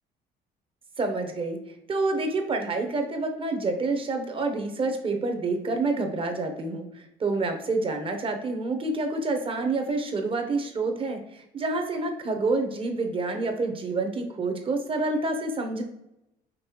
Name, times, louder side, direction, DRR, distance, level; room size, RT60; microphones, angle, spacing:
voice 1, 1.0-1.6 1.9-15.8, right 3 dB, 30° right, 5 dB, 0.9 m, -28 dB
5.3 x 3.1 x 3.0 m, 0.86 s
cardioid pair, 110°, 17 cm